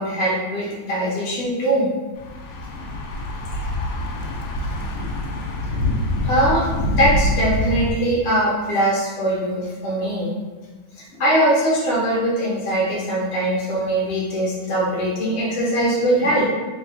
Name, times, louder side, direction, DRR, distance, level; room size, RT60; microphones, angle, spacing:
voice 1, 0.0-1.9 6.2-6.7 7.0-10.3 11.0-16.5, right 1 dB, 50° left, -6 dB, 0.7 m, -21 dB
Thunder / Bicycle, 2.2-7.9, left 1 dB, 85° left, 1.3 m, -25 dB
3.4 x 2.9 x 2.5 m, 1.3 s
omnidirectional pair, 1.9 m